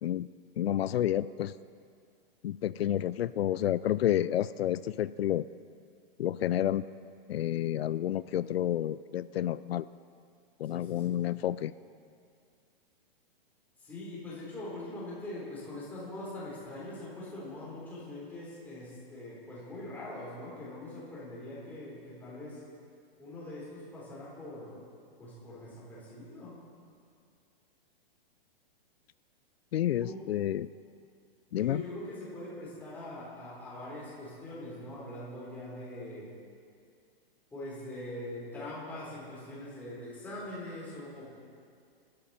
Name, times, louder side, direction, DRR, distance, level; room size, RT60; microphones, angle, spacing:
voice 1, 0.6-1.5 2.4-5.5 6.2-6.8 7.3-9.8 10.6-11.7 29.7-30.7 31.5-31.8, left 12 dB, 85° left, 16 dB, 0.5 m, -30 dB
voice 2, 10.6-11.2 13.8-22.6 23.2-24.8 25.2-26.6 30.0-30.3 31.6-36.3 37.5-41.3, left 1 dB, 5° left, -8 dB, 3.9 m, -42 dB
25.0 x 13.0 x 4.3 m, 2.3 s
hypercardioid pair, 170°, 30 cm